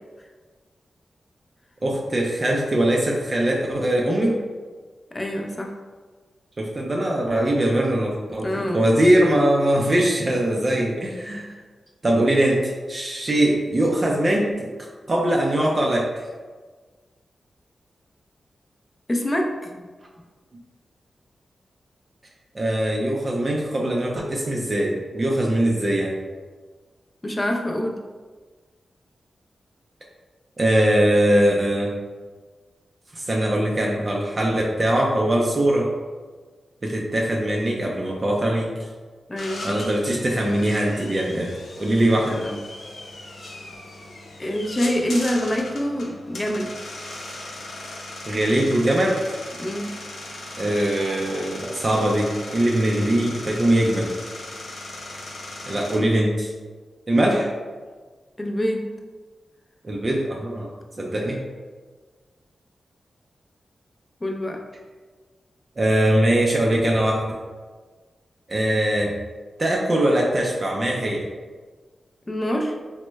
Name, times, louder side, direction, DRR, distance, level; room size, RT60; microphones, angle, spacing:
voice 1, 1.8-4.4 6.6-11.5 12.0-14.7 15.1-16.3 22.5-26.2 30.6-31.9 33.1-35.9 36.8-38.9 39.6-42.5 48.3-49.2 50.6-54.1 55.7-56.5 57.1-57.5 59.8-61.4 65.8-67.4 68.5-69.2 69.6-71.3, right 1 dB, 40° right, -2 dB, 0.4 m, -21 dB
voice 2, 5.1-5.8 8.4-8.8 19.1-19.9 27.2-28.0 39.3-39.8 42.2-42.6 44.4-46.7 49.6-49.9 58.4-58.9 64.2-64.6 72.3-72.8, equal, 25° left, 1 dB, 0.4 m, -26 dB
sound 1, 39.4-56.0, left 2 dB, 85° left, 0.6 m, -38 dB
3.3 x 2.1 x 3.1 m, 1.4 s
cardioid pair, 65°, 0 cm